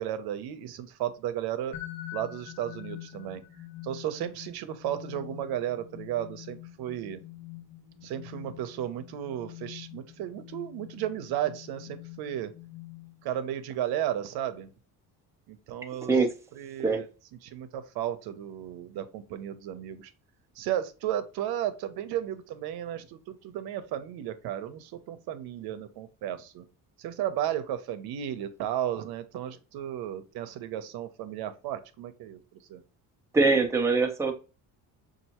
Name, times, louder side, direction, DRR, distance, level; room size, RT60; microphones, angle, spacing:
voice 1, 0.0-1.8 2.1-3.4 3.8-7.2 8.0-12.5 13.2-14.7 15.5-16.1 16.6-17.1 17.4-20.1 20.6-26.6 27.0-32.8, right 11 dB, 80° right, 0.8 m, -34 dB
sound 1, 1.7-13.5, left 14 dB, 55° left, 0.9 m, -45 dB
voice 2, 33.3-34.3, right 3 dB, 10° right, 0.6 m, -23 dB
6.5 x 2.6 x 2.9 m
cardioid pair, 160°, 37 cm